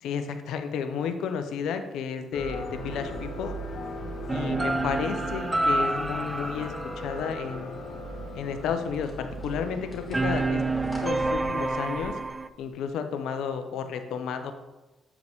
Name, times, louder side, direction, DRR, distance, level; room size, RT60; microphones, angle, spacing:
voice 1, 0.0-3.5 4.3-7.8 8.3-10.6 11.0-12.2 12.6-14.5, left 6 dB, 80° left, 8 dB, 0.6 m, -32 dB
sound 1, 2.3-10.9, equal, 55° left, 1.1 m, -38 dB
sound 2, 3.3-3.4 4.2-4.3 4.8-4.9 6.5-6.6 8.7-12.9, left 2 dB, 10° left, 2.3 m, -45 dB
sound 3, 4.3-7.9 10.1-12.5, right 2 dB, 15° right, 0.3 m, -28 dB
7.8 x 4.8 x 3.5 m, 1.1 s
cardioid pair, 90°, 0 cm